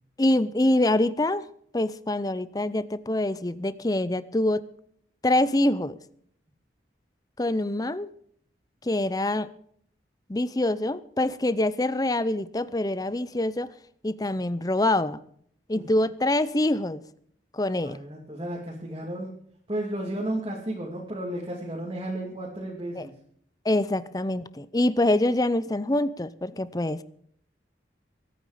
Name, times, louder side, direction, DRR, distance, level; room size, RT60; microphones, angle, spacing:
voice 1, 0.2-1.4 1.7-4.6 5.2-6.0 7.4-8.1 8.8-9.5 10.3-13.7 14.0-15.2 15.7-17.0 17.5-18.0 23.0-23.1 23.6-27.0, left 1 dB, 20° left, 16 dB, 0.6 m, -25 dB
voice 2, 17.8-19.3 19.7-23.1, right 1 dB, 30° right, -3 dB, 2.6 m, -33 dB
23.5 x 9.3 x 5.0 m, 0.64 s
head